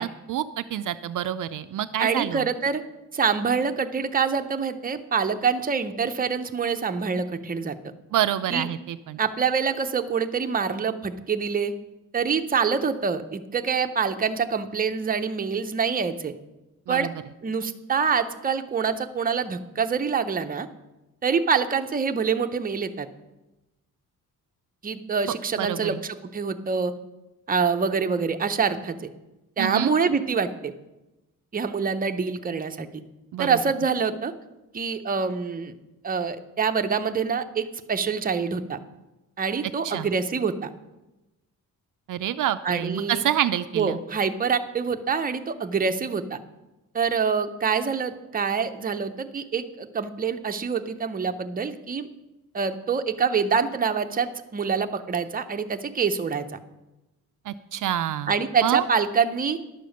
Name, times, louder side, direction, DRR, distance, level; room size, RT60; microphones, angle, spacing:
voice 1, 0.0-2.5 8.1-9.2 16.9-17.1 25.2-26.0 29.6-29.9 33.3-33.6 39.8-40.1 42.1-44.0 57.5-58.3 58.6-58.8, right 11 dB, 70° right, 11 dB, 0.4 m, -27 dB
voice 2, 2.0-2.8 3.1-7.7 8.5-8.7 9.2-11.7 12.1-16.3 16.9-17.1 17.4-20.7 21.2-23.1 24.8-26.9 27.5-29.0 29.6-30.7 31.5-32.9 33.4-34.3 34.7-35.7 36.0-38.8 39.4-40.7 42.6-43.2 43.8-46.4 46.9-52.1 52.5-56.5 58.3-59.6, right 6 dB, 25° right, 7 dB, 0.6 m, -25 dB
11.0 x 6.7 x 6.4 m, 1.0 s
wide cardioid pair, 135°, 34 cm